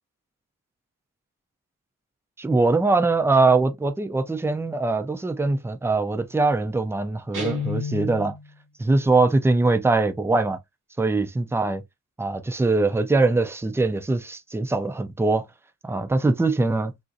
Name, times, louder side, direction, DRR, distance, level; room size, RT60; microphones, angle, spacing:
voice 1, 2.4-8.3 8.8-10.6 11.0-11.8 12.2-15.5 15.8-16.9, right 3 dB, 10° right, 0.4 m, -22 dB
Guitar, 7.3-8.5, left 3 dB, 75° right, 1.2 m, -30 dB
3.7 x 2.4 x 2.6 m
wide cardioid pair, 140°, 31 cm